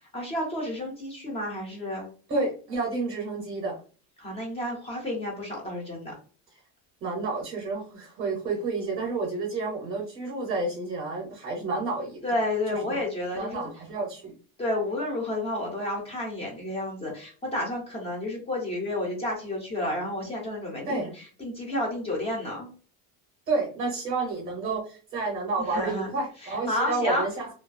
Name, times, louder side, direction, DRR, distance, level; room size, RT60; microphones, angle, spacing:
voice 1, 0.1-2.1 4.2-6.1 12.2-13.7 14.6-21.1 21.4-22.7 25.7-26.1 26.7-27.2, left 1 dB, 15° left, -1 dB, 0.3 m, -30 dB
voice 2, 2.3-3.8 7.0-12.2 12.7-13.0 13.3-14.3 20.8-21.1 23.5-27.5, right 3 dB, 30° right, 0 dB, 0.6 m, -30 dB
2.5 x 2.3 x 2.4 m, 0.39 s
cardioid pair, 180°, 43 cm